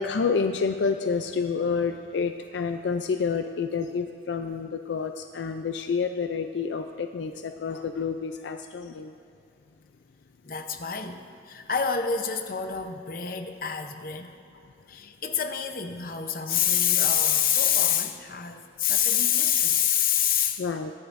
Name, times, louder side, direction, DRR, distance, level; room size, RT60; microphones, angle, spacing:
voice 1, 0.0-9.1 20.6-20.9, left 5 dB, 75° left, 7 dB, 0.4 m, -29 dB
voice 2, 10.4-11.2 11.4-14.3 14.9-20.6, left 9 dB, 50° left, 6 dB, 0.7 m, -26 dB
23.5 x 10.0 x 2.6 m, 2.8 s
head